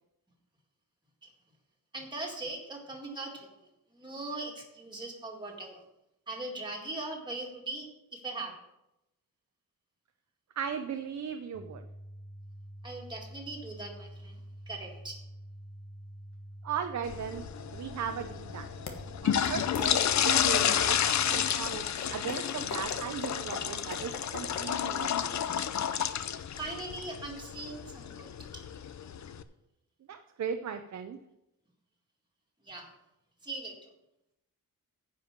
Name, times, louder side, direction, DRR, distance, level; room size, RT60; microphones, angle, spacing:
voice 1, 1.9-5.8 6.3-7.9 8.1-8.5 12.8-15.2 26.6-28.6 32.6-32.9 33.4-33.9, right 2 dB, 10° right, -1 dB, 2.0 m, -40 dB
voice 2, 10.6-11.8 16.6-17.4 17.7-18.7 19.2-21.0 21.3-21.8 22.1-25.6 30.1-31.2, right 7 dB, 50° right, 6 dB, 0.6 m, -37 dB
sound 1, 11.5-21.5, equal, 25° left, 1.2 m, -47 dB
sound 2, 17.0-29.4, left 9 dB, 50° left, 0.6 m, -31 dB
sound 3, 18.9-19.0 19.4-19.9 20.6-20.7 21.3-24.9, left 5 dB, 85° left, 1.5 m, -40 dB
10.0 x 5.5 x 7.4 m, 0.88 s
wide cardioid pair, 170°, 36 cm